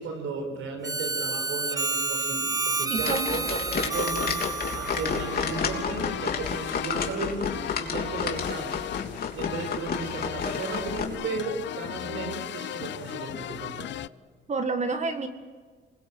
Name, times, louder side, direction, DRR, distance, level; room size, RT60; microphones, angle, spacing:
voice 1, 0.0-8.8 9.3-13.9, right 4 dB, 85° right, 5 dB, 6.5 m, -35 dB
Harmonica, 0.8-6.0, right 3 dB, 20° right, 0.8 m, -30 dB
voice 2, 2.9-3.5 14.5-15.3, right 3 dB, 35° right, 7 dB, 1.9 m, -29 dB
sound 1, 3.0-11.0, left 6 dB, 50° left, 3.3 m, -31 dB
sound 2, 5.1-14.1, left 12 dB, 65° left, 0.6 m, -36 dB
27.0 x 21.5 x 8.0 m, 1.5 s
cardioid pair, 90°, 20 cm